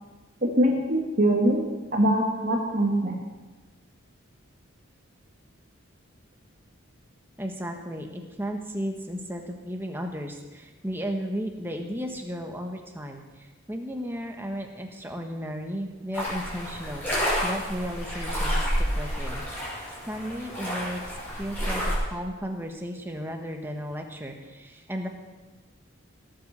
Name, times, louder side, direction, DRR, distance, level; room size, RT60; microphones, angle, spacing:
voice 1, 0.6-1.6 1.9-3.1, right 1 dB, 45° right, -1 dB, 2.3 m, -22 dB
voice 2, 7.4-19.4 20.1-25.1, equal, 10° right, 3 dB, 1.4 m, -34 dB
sound 1, 16.1-22.0, equal, 10° left, 5.6 m, -29 dB
18.0 x 8.8 x 6.8 m, 1.2 s
head